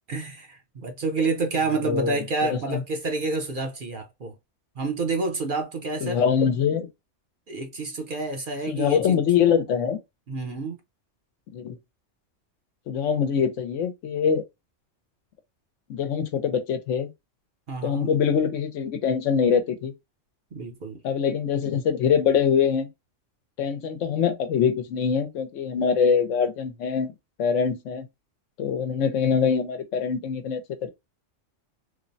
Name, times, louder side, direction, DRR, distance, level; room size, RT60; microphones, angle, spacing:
voice 1, 0.1-4.3 4.8-6.2 7.5-9.2 10.3-10.8 17.7-18.1 20.5-21.0, right 3 dB, 50° right, 0.7 m, -29 dB
voice 2, 1.8-2.8 6.0-6.9 8.7-10.0 11.5-11.8 12.9-14.4 15.9-17.1 17.8-19.9 21.0-22.9 23.6-27.1 27.4-28.1 28.6-30.9, left 7 dB, 80° left, 1.0 m, -24 dB
3.1 x 2.0 x 2.5 m
omnidirectional pair, 1.3 m